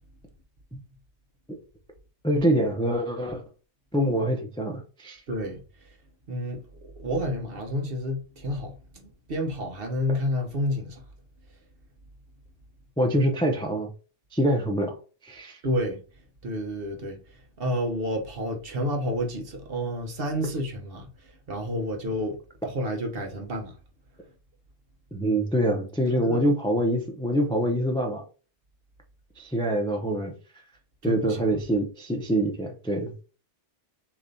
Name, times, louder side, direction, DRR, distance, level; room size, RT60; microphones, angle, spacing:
voice 1, 2.2-3.4 3.9-5.2 13.0-13.9 14.3-15.0 15.2-15.6 25.1-28.2 29.4-30.3 31.0-33.2, right 1 dB, 5° left, 0.4 m, -25 dB
voice 2, 5.3-5.9 6.3-6.6 7.0-11.0 15.6-16.0 16.4-22.4 22.6-23.8 26.1-26.4 31.0-31.6, equal, 55° right, 1.1 m, -30 dB
6.5 x 3.0 x 2.7 m
omnidirectional pair, 1.2 m